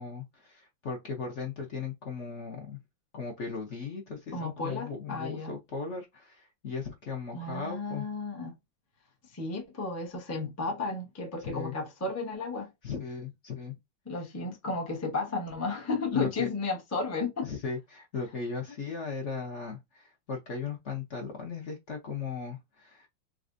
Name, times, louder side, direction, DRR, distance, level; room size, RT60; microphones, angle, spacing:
voice 1, 0.0-2.8 3.1-8.0 11.4-11.7 12.8-13.7 16.1-16.5 17.4-23.1, left 5 dB, 55° left, 0.8 m, -37 dB
voice 2, 4.3-5.5 7.3-8.5 9.3-12.7 14.1-17.5, left 3 dB, 25° left, 0.3 m, -33 dB
4.1 x 2.4 x 2.5 m
omnidirectional pair, 2.1 m